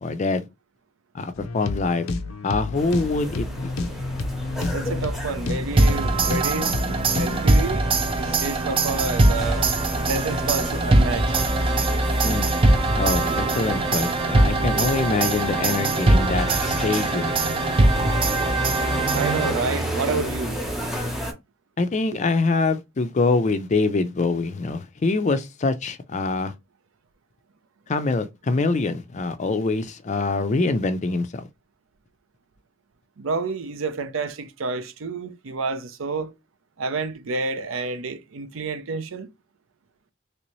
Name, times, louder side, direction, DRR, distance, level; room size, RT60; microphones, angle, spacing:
voice 1, 0.0-0.5 1.1-2.2 2.4-3.7 12.2-12.5 12.9-17.3 21.8-26.5 27.9-31.5, left 3 dB, 35° left, 0.4 m, -24 dB
sound 1, 1.4-7.4, left 2 dB, 90° left, 0.5 m, -30 dB
sound 2, 2.7-21.3, equal, ahead, 0.8 m, -30 dB
voice 2, 4.7-6.8 7.1-9.7 10.1-11.4 19.1-20.7 33.2-36.3 36.8-39.3, right 4 dB, 75° right, 0.5 m, -29 dB
sound 3, 5.8-19.9, right 2 dB, 25° right, 0.4 m, -22 dB
3.3 x 2.7 x 3.0 m
head